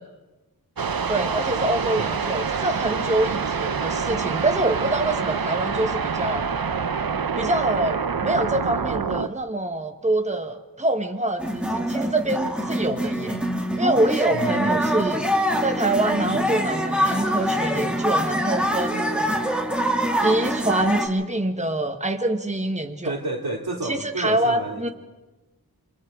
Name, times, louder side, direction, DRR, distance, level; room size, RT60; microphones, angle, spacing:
sound 1, 0.8-9.3, right 5 dB, 70° right, 0.8 m, -26 dB
voice 1, 1.1-6.4 7.4-13.4 13.8-15.2 15.6-19.5 20.2-23.2 23.8-24.9, right 1 dB, 20° right, 6 dB, 1.3 m, -25 dB
sound 2, 11.4-21.1, equal, 5° right, 2.4 m, -24 dB
voice 2, 14.3-14.8 23.0-24.9, right 2 dB, 90° right, 1 dB, 2.6 m, -31 dB
28.0 x 25.5 x 3.8 m, 1.1 s
wide cardioid pair, 50°, 36 cm